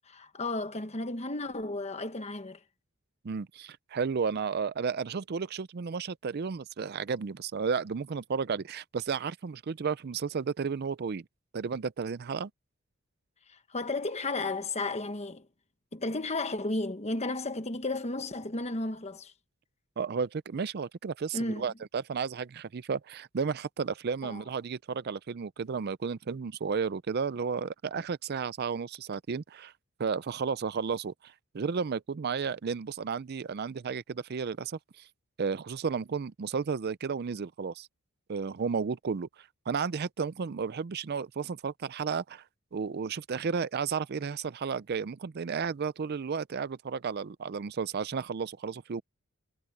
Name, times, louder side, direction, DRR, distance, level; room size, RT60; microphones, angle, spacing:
voice 1, 0.1-2.6 13.5-15.5 15.9-19.3 21.3-21.6 24.2-24.4, left 2 dB, 30° left, 1.3 m, -33 dB
voice 2, 3.2-11.2 11.5-12.5 20.0-29.7 30.0-35.1 35.4-37.9 38.3-42.4 42.7-49.0, right 5 dB, 45° right, 0.4 m, -33 dB
head